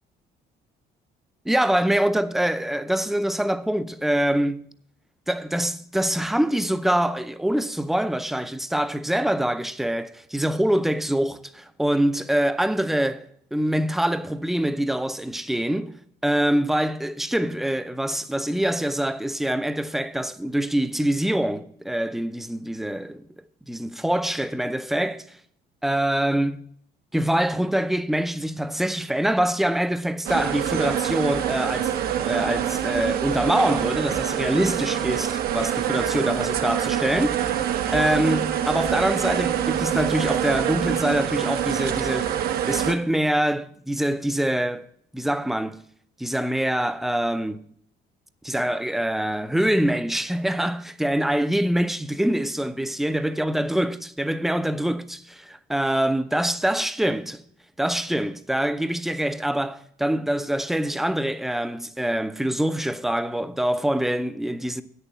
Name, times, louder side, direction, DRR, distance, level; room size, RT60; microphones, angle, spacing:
voice 1, 1.5-4.7 5.3-16.0 16.2-23.2 23.7-25.4 25.8-26.6 27.1-31.9 32.2-37.4 37.9-42.4 42.7-44.9 45.1-45.8 46.2-47.6 48.4-57.4 57.8-64.8, right 1 dB, ahead, 0.5 m, -24 dB
sound 1, 30.3-43.0, right 10 dB, 65° right, 0.8 m, -25 dB
8.4 x 7.0 x 7.2 m
cardioid pair, 110°, 17 cm